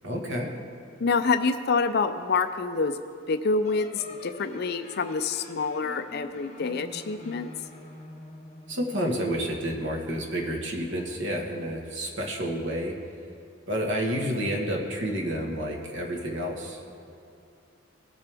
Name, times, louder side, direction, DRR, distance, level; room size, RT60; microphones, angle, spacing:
voice 1, 0.0-0.5 8.7-13.0 13.7-16.8, equal, 55° right, 0 dB, 1.5 m, -30 dB
voice 2, 1.0-3.0 3.3-7.5, left 4 dB, 50° left, 10 dB, 0.4 m, -27 dB
sound 1, 3.6-9.7, left 1 dB, 30° left, 1.0 m, -46 dB
19.0 x 6.7 x 3.5 m, 2.6 s
head